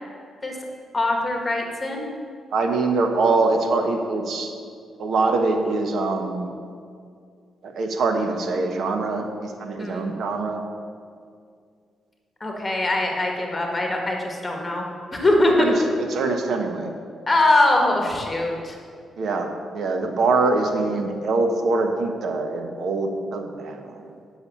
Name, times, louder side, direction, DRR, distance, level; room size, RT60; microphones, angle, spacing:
voice 1, 0.9-2.1 9.8-10.1 12.4-14.9 15.1-15.7 17.3-18.8, left 2 dB, 25° left, 1 dB, 1.7 m, -22 dB
voice 2, 2.5-4.5 5.0-6.5 7.6-10.6 15.6-15.7 16.0-16.9 19.2-24.1, right 3 dB, 70° right, 5 dB, 1.1 m, -24 dB
8.4 x 6.2 x 7.2 m, 2.2 s
cardioid pair, 85°, 0 cm